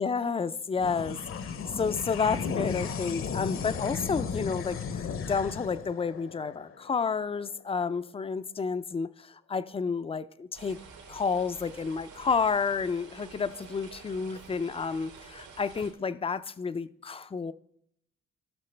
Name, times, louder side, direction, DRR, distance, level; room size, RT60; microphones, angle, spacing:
voice 1, 0.0-10.8 11.1-17.5, left 5 dB, 20° left, 0.4 m, -30 dB
sound 1, 0.7-7.5, left 6 dB, 45° left, 0.7 m, -35 dB
sound 2, 10.5-15.9, right 5 dB, 85° right, 3.0 m, -49 dB
16.0 x 6.0 x 3.3 m
cardioid pair, 90°, 30 cm